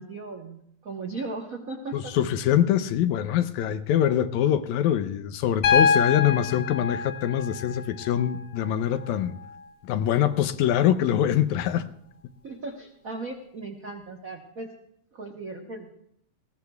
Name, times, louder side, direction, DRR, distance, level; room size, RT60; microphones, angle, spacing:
voice 1, 0.0-2.1 12.4-14.7 15.1-15.9, right 3 dB, 85° right, 1 dB, 0.7 m, -37 dB
voice 2, 1.9-9.3 9.8-11.9, left 10 dB, 80° left, 11 dB, 2.0 m, -24 dB
Piano, 5.6-9.6 11.2-11.3, left 6 dB, 45° left, 2.0 m, -26 dB
20.0 x 16.0 x 2.3 m, 0.71 s
omnidirectional pair, 3.3 m